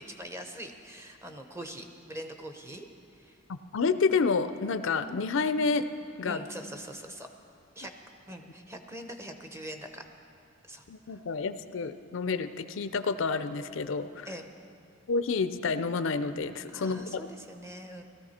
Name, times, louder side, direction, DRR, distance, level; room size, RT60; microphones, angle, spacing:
voice 1, 0.0-2.9 3.1-3.3 6.3-7.3 7.8-7.9 8.3-10.0 10.7-11.2 14.2-14.5 16.7-18.0, equal, 15° right, 5 dB, 0.8 m, -43 dB
voice 2, 3.7-5.8 6.2-6.4 10.9-14.3 15.1-17.3, left 4 dB, 65° left, 12 dB, 0.5 m, -29 dB
17.0 x 13.5 x 4.3 m, 2.8 s
head